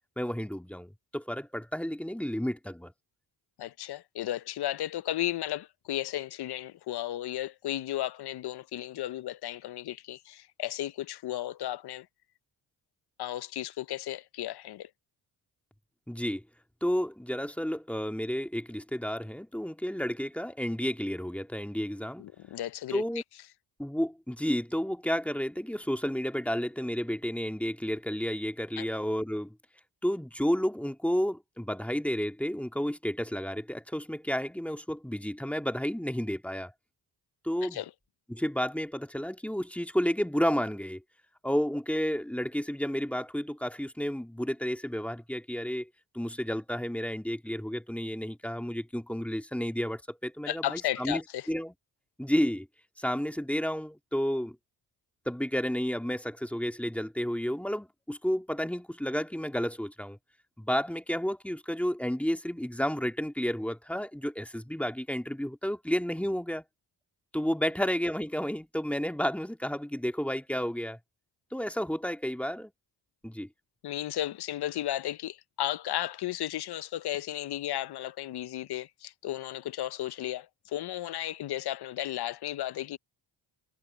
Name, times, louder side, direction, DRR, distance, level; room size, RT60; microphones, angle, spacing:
voice 1, 0.2-2.9 16.1-16.4 16.8-22.2 22.9-23.2 23.8-29.6 30.0-36.7 37.4-37.8 38.3-41.0 41.4-45.9 46.1-51.2 51.5-51.7 52.2-52.7 53.0-54.6 55.3-60.2 60.6-66.6 67.3-71.0 71.5-72.7 73.2-73.5, equal, 5° left, 2.1 m, -31 dB
voice 2, 3.6-12.1 13.2-14.9 22.2-23.0 28.8-28.9 37.6-37.9 50.5-51.5 73.8-83.0, left 13 dB, 65° left, 0.7 m, -34 dB
cardioid pair, 85°, 41 cm